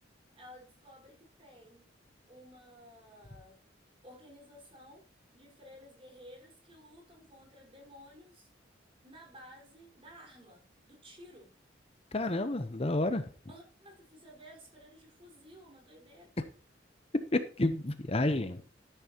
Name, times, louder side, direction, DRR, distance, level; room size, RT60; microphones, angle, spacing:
voice 1, 0.4-1.9 2.3-3.6 4.0-5.1 5.3-8.5 9.0-11.5 13.5-16.4, equal, 30° right, 4.8 m, -54 dB
voice 2, 12.1-13.3 17.3-18.7, left 2 dB, 30° left, 0.8 m, -30 dB
13.0 x 10.0 x 2.9 m
head